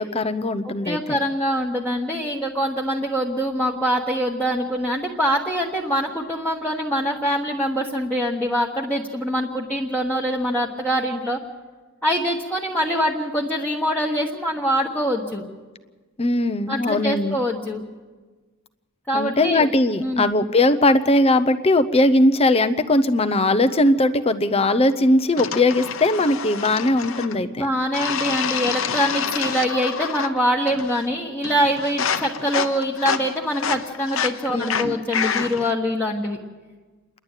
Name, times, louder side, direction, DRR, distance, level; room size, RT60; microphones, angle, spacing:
voice 1, 0.0-1.2 16.2-17.4 19.1-27.7 34.5-35.0, left 2 dB, 30° left, 10 dB, 0.7 m, -19 dB
voice 2, 0.6-11.4 12.0-15.4 16.7-17.9 19.1-19.7 20.0-20.3 27.4-36.4, equal, 5° left, -4 dB, 1.3 m, -24 dB
sound 1, 25.4-27.4 27.9-30.4 30.7-31.1 31.4-35.7, left 6 dB, 65° left, 0.9 m, -28 dB
28.0 x 11.0 x 9.0 m, 1.3 s
head